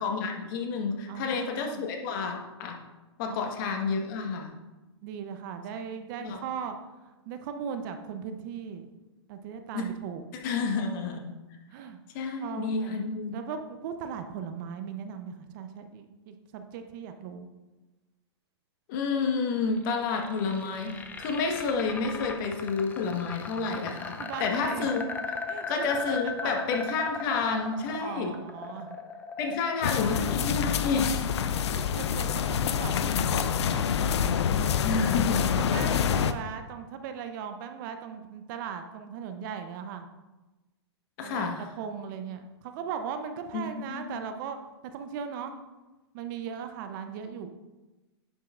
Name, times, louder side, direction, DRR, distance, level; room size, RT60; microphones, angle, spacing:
voice 1, 0.0-2.8 3.2-4.5 6.2-6.4 9.7-9.8 10.4-11.3 12.1-13.4 18.9-25.1 25.7-28.4 29.4-31.3 34.8-35.8 41.2-41.6 43.5-44.2, left 4 dB, 50° left, 2 dB, 1.3 m, -30 dB
voice 2, 1.1-1.8 3.3-3.4 5.0-8.9 9.3-10.2 11.7-12.0 12.4-13.0 13.3-17.5 24.2-24.9 25.5-26.6 28.0-29.0 31.7-33.9 35.7-40.1 41.2-41.5 41.8-44.6 44.9-45.5 46.1-47.5, right 7 dB, 45° right, 7 dB, 0.7 m, -38 dB
sound 1, 19.8-31.8, left 4 dB, 10° left, 0.5 m, -38 dB
sound 2, 29.8-36.3, left 8 dB, 75° left, 0.5 m, -27 dB
10.5 x 5.6 x 2.5 m, 1.1 s
hypercardioid pair, 125°, 14 cm